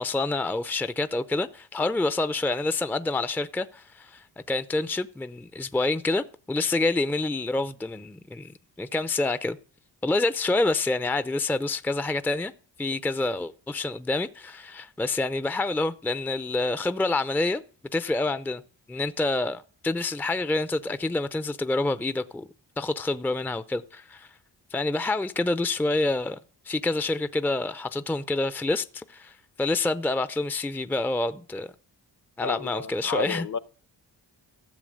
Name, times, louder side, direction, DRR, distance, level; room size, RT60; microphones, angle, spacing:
voice 1, 0.0-9.6 10.0-12.5 12.8-17.6 17.9-18.6 18.9-22.5 22.8-24.3 24.7-26.4 26.7-31.7 32.4-33.5, left 2 dB, 5° left, 0.5 m, -27 dB
voice 2, 32.4-33.6, left 5 dB, 45° left, 0.8 m, -31 dB
14.0 x 7.1 x 6.4 m
cardioid pair, 60°, 44 cm